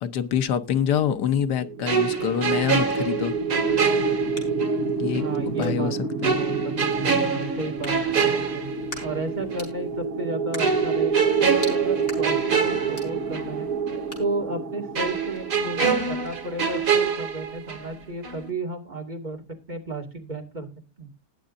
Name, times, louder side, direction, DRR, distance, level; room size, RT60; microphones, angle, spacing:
voice 1, 0.0-3.3 5.0-6.3, left 8 dB, 90° left, 1.5 m, -26 dB
sound 1, 1.6-16.6, right 4 dB, 65° right, 1.3 m, -28 dB
sound 2, 1.9-4.8 5.1-5.3 6.2-9.2 9.5-9.7 10.6-13.6 13.9-14.0 14.9-18.0 18.2-18.5, right 6 dB, 80° right, 2.8 m, -26 dB
sound 3, 3.7-16.9, left 1 dB, 35° left, 5.3 m, -47 dB
voice 2, 5.2-8.7 9.0-13.7 14.2-19.4 19.7-20.7 21.0-21.1, right 2 dB, 25° right, 2.4 m, -33 dB
20.0 x 7.1 x 2.6 m
omnidirectional pair, 1.7 m